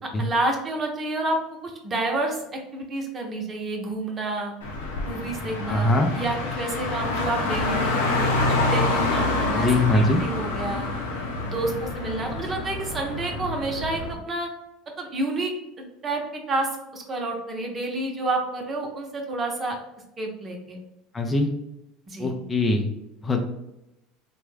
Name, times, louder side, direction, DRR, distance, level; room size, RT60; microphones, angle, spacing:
voice 1, 0.2-1.4 1.6-4.5 5.0-8.3 8.7-10.9 11.5-14.5 15.0-19.8 20.2-20.8 22.1-22.3, right 2 dB, 35° right, 2 dB, 0.9 m, -29 dB
Car, 4.6-14.1, left 2 dB, 85° left, 0.7 m, -27 dB
voice 2, 5.6-6.1 9.5-10.2 21.1-21.5 22.2-22.8 23.2-23.4, left 2 dB, 25° left, 3 dB, 0.5 m, -22 dB
3.4 x 2.2 x 3.3 m, 0.88 s
hypercardioid pair, 80°, 0 cm